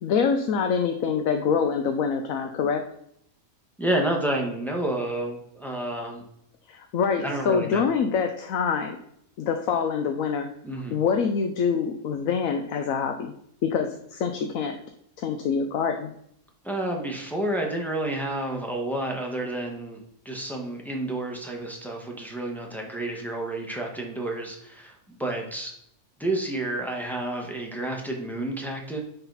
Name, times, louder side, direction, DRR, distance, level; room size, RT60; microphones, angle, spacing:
voice 1, 0.0-2.8 6.7-9.0 9.4-10.5 10.9-13.3 13.6-14.7 15.2-16.1, left 6 dB, 75° left, 5 dB, 1.1 m, -25 dB
voice 2, 3.8-6.2 7.2-7.9 10.6-11.0 16.6-25.7 26.2-29.0, right 1 dB, ahead, 0 dB, 1.4 m, -30 dB
9.8 x 4.1 x 4.1 m, 0.71 s
omnidirectional pair, 1.5 m